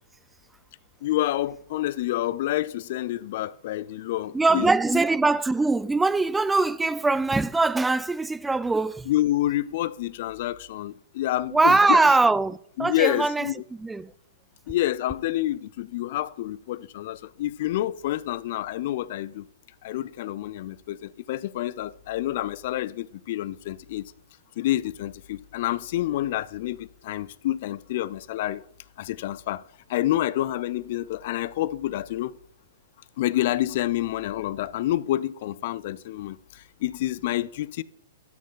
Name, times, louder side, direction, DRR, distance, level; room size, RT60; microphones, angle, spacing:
voice 1, 1.0-5.0 9.1-12.1 12.8-13.6 14.7-19.5 19.8-24.1 24.6-28.6 29.0-29.6 29.9-32.3 33.2-37.8, left 14 dB, 55° left, 0.4 m, -28 dB
voice 2, 4.3-9.1 11.5-14.1, right 3 dB, 10° right, 0.4 m, -22 dB
13.0 x 5.0 x 3.9 m
hypercardioid pair, 115°, 0 cm